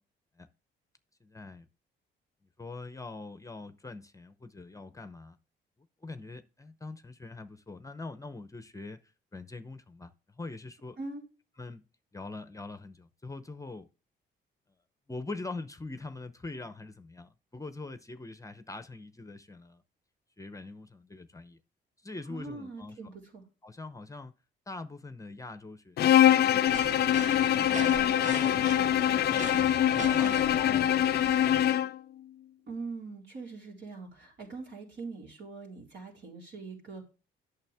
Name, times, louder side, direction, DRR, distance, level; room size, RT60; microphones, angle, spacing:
voice 1, 1.2-1.7 2.6-5.4 6.0-11.0 11.6-11.8 12.1-13.9 15.1-19.8 20.4-21.6 22.0-23.0 23.6-24.3 24.7-27.2 27.5-29.2 29.7-31.3, left 3 dB, 15° left, 0.7 m, -43 dB
voice 2, 22.3-23.4 32.7-37.1, right 3 dB, 70° right, 3.9 m, -42 dB
Bowed string instrument, 26.0-32.0, left 11 dB, 55° left, 0.4 m, -24 dB
sound 1, 26.6-31.7, right 6 dB, 40° right, 0.5 m, -40 dB
8.8 x 6.5 x 3.5 m
cardioid pair, 90°, 20 cm